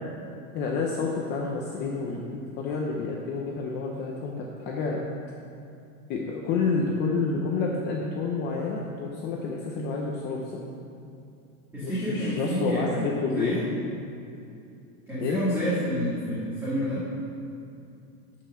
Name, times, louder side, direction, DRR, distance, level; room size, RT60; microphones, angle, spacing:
voice 1, 0.5-5.0 6.1-10.6 11.8-13.6 15.2-15.4, left 4 dB, 25° left, -1 dB, 0.6 m, -29 dB
voice 2, 11.7-13.7 15.1-17.1, equal, 5° right, -12 dB, 2.0 m, -29 dB
12.5 x 5.7 x 6.2 m, 2.6 s
supercardioid pair, 170°, 44 cm